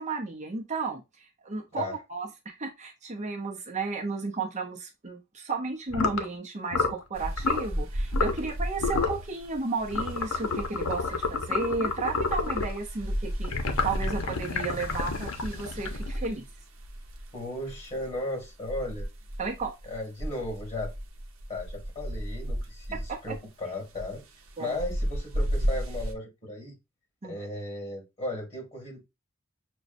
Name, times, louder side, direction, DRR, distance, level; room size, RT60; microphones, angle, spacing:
voice 1, 0.0-13.5 13.8-16.4 19.4-19.7 23.1-23.4 24.6-24.8 27.2-27.4, right 3 dB, 35° right, 0.7 m, -33 dB
sound 1, 5.9-6.2 6.7-7.0 7.4-7.7 8.1-8.5 8.8-9.2 9.9-12.8 13.4-16.3, left 4 dB, 90° left, 0.7 m, -29 dB
sound 2, 7.1-26.1, equal, 75° right, 0.8 m, -35 dB
voice 2, 17.3-19.1 19.9-20.9 21.5-24.2 24.6-26.7 27.2-29.0, left 1 dB, 30° left, 2.0 m, -36 dB
6.0 x 2.2 x 2.6 m
head